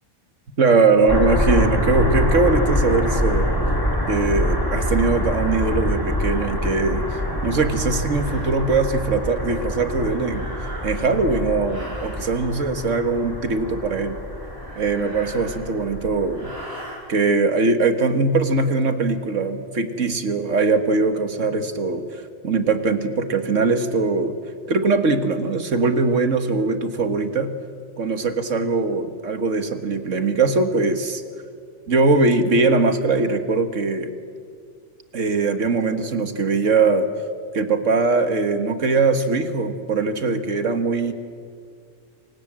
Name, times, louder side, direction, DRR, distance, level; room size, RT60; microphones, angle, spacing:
voice 1, 0.6-3.5 4.1-10.5 10.8-14.2 14.8-16.5 17.1-24.4 24.7-27.5 28.0-31.2 31.9-34.1 35.1-37.1 37.5-41.1, right 3 dB, 70° right, 9 dB, 2.0 m, -21 dB
sound 1, 1.1-16.6, equal, 15° left, 2.7 m, -25 dB
sound 2, 8.1-8.6 10.2-11.2 11.6-12.3 14.4-15.9 16.3-17.0, right 1 dB, 50° right, 5.3 m, -40 dB
28.0 x 25.5 x 7.6 m, 2.2 s
omnidirectional pair, 1.4 m